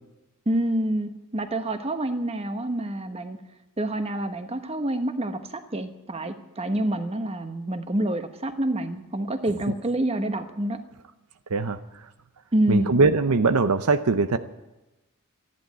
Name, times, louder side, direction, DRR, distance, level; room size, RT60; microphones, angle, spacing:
voice 1, 0.5-3.4 3.8-10.8 12.5-12.9, right 1 dB, 25° right, 8 dB, 1.1 m, -27 dB
voice 2, 12.7-14.4, right 4 dB, 75° right, 10 dB, 0.7 m, -21 dB
13.5 x 11.0 x 9.3 m, 1.0 s
head